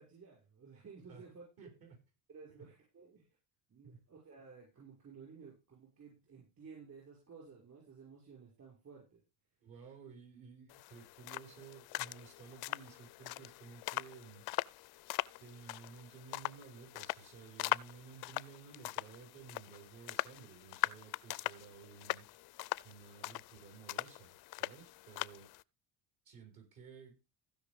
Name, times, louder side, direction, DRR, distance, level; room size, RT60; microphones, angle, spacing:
voice 1, 0.0-1.7 2.3-3.3 3.7-9.2, right 5 dB, 40° right, -1 dB, 6.0 m, -55 dB
voice 2, 1.6-2.0 2.5-2.6 3.8-4.0 9.6-14.5 15.4-22.3 22.8-25.5 26.2-27.2, right 6 dB, 60° right, 3 dB, 6.2 m, -54 dB
sound 1, 10.7-25.6, left 21 dB, 70° left, 0.6 m, -41 dB
16.0 x 5.5 x 5.3 m, 0.28 s
cardioid pair, 115°, 39 cm